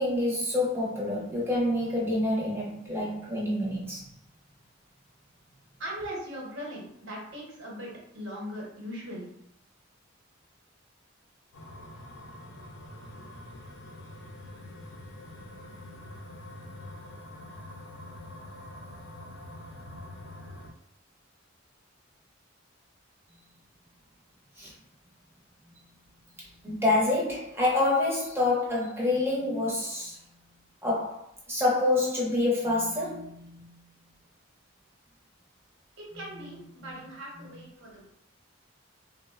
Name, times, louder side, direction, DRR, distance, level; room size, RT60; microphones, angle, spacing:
voice 1, 0.0-4.1 24.6-24.7 26.6-30.2 30.8-31.2 31.5-33.7, left 2 dB, 10° right, -5 dB, 0.6 m, -27 dB
voice 2, 5.8-9.3 36.1-38.1, equal, 70° right, -3 dB, 0.9 m, -39 dB
sound 1, 11.5-20.7, left 1 dB, 85° left, 0.5 m, -45 dB
3.5 x 2.0 x 2.3 m, 0.73 s
head